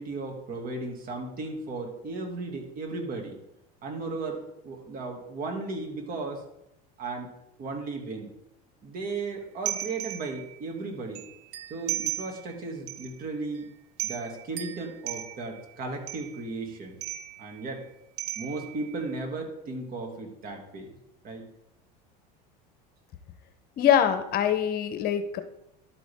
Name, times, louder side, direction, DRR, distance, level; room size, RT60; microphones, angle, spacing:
voice 1, 0.0-3.4 3.8-6.4 7.0-7.3 7.6-8.3 8.8-11.2 11.7-13.7 14.0-17.0 17.4-17.9 18.4-20.9 21.2-21.5, right 3 dB, 45° right, 2 dB, 2.5 m, -35 dB
sound 1, 9.6-10.6 11.1-12.5 12.9-13.1 13.5-13.6 14.0-15.6 16.1-16.5 17.0-17.6 18.2-19.0, right 12 dB, 75° right, 0.9 m, -35 dB
voice 2, 23.8-25.4, left 9 dB, 50° left, 9 dB, 1.0 m, -23 dB
11.5 x 8.2 x 3.7 m, 0.84 s
supercardioid pair, 110°, 21 cm